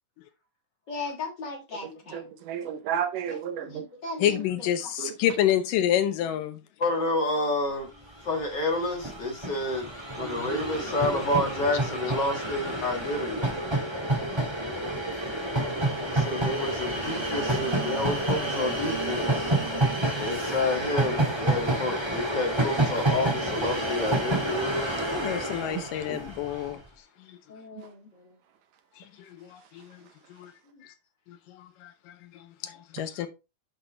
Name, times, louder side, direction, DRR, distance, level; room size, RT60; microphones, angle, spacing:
voice 1, 0.9-2.2 3.3-4.7 6.8-7.9 8.2-9.9 10.1-13.5 16.3-19.5 20.1-24.7 26.0-26.2 27.5-28.3, left 2 dB, 40° left, 1.8 m, -30 dB
voice 2, 1.8-3.9 5.0-5.1 10.2-10.8 25.8-25.9, right 8 dB, 80° right, 2.4 m, -33 dB
voice 3, 4.2-6.6 25.1-26.8 27.3-27.4 29.3-30.0 30.3-30.5 30.8-30.9 31.3-31.9 32.2-33.3, left 11 dB, 85° left, 2.6 m, -28 dB
Train, 8.0-8.1 8.3-26.7, right 1 dB, 15° right, 0.9 m, -29 dB
7.6 x 5.7 x 3.4 m
omnidirectional pair, 3.8 m